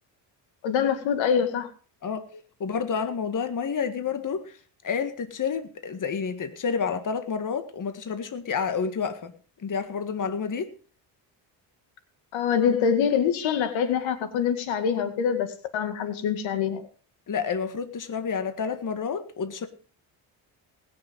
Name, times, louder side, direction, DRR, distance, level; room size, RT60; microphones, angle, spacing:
voice 1, 0.6-1.7 12.3-16.9, left 7 dB, 75° left, 2.0 m, -25 dB
voice 2, 2.6-4.6 4.8-9.3 9.6-10.7 17.3-19.7, left 6 dB, 40° left, 1.8 m, -29 dB
19.5 x 7.0 x 5.3 m
supercardioid pair, 75°, 46 cm